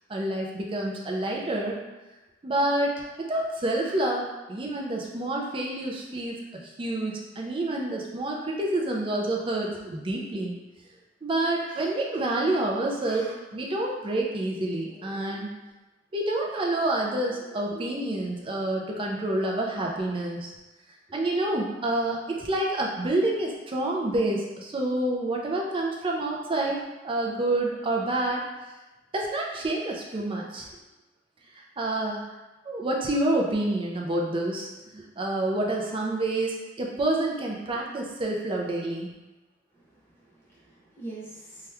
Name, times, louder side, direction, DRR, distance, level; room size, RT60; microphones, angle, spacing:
voice 1, 0.1-1.8 2.4-6.4 6.6-10.6 11.2-15.5 16.1-20.5 21.1-26.8 27.0-28.4 29.1-30.7 31.8-32.2 32.7-39.1, right 1 dB, 25° right, -1 dB, 0.4 m, -28 dB
voice 2, 39.7-41.7, right 2 dB, 10° left, -8 dB, 0.8 m, -44 dB
2.9 x 2.3 x 3.3 m, 1.1 s
head